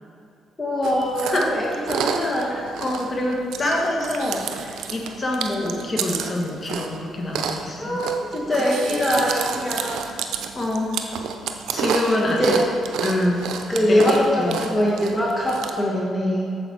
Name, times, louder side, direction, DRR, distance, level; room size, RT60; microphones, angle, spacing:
voice 1, 0.6-2.6 7.8-10.1 12.2-12.7 13.7-16.5, equal, 20° left, -3 dB, 1.4 m, -23 dB
Chewing mastication, 0.8-15.7, right 6 dB, 80° right, 0.6 m, -30 dB
voice 2, 2.8-8.0 10.5-10.9 11.7-12.6 13.0-13.5 13.9-14.6, left 1 dB, 35° left, -1 dB, 1.6 m, -25 dB
8.4 x 6.9 x 4.4 m, 2.5 s
cardioid pair, 90°, 0 cm